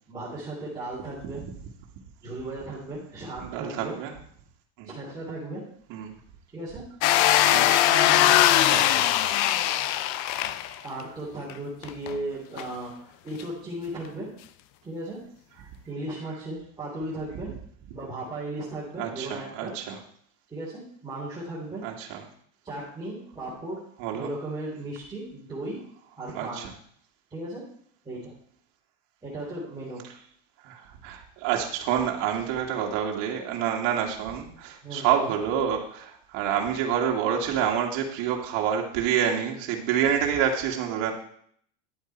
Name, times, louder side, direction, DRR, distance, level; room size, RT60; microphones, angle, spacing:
voice 1, 0.1-1.4 2.2-4.0 4.9-5.6 6.5-6.8 7.8-8.5 10.8-14.3 14.8-15.2 15.5-17.5 17.9-19.8 20.5-21.8 22.6-23.8 24.1-25.8 26.2-26.7 27.3-27.6 28.0-28.3 29.2-30.1 34.8-35.4, right 2 dB, 10° right, -8 dB, 3.2 m, -36 dB
voice 2, 3.4-4.1 4.8-4.9 5.9-6.1 7.5-7.8 8.7-9.5 19.0-20.0 21.8-22.2 24.0-24.3 26.3-26.7 30.6-41.1, right 8 dB, 50° right, 0 dB, 2.1 m, -28 dB
sound 1, 7.0-11.0 11.5-11.6 11.8-12.1 12.6-12.7 13.4-13.5, left 13 dB, 50° left, 0.7 m, -21 dB
10.5 x 8.0 x 4.6 m, 0.63 s
supercardioid pair, 140°, 40 cm